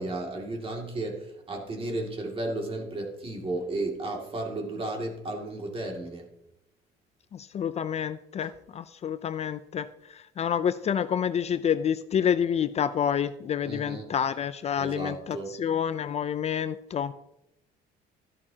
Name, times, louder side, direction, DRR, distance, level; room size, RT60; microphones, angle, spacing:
voice 1, 0.0-6.3 8.4-8.5 13.6-14.1 14.8-15.6, right 2 dB, 35° right, 2 dB, 2.3 m, -34 dB
voice 2, 7.3-9.9 10.4-17.1, left 8 dB, 40° left, 13 dB, 0.5 m, -28 dB
13.0 x 11.0 x 2.8 m, 0.84 s
cardioid pair, 110°, 17 cm